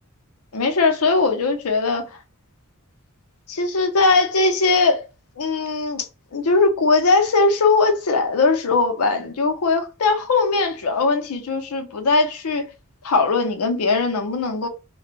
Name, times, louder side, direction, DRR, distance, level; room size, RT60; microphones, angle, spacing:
voice 1, 0.5-2.1 3.5-5.1 5.4-12.7 13.0-14.7, left 3 dB, 80° left, 0.6 m, -20 dB
2.1 x 2.1 x 3.0 m
head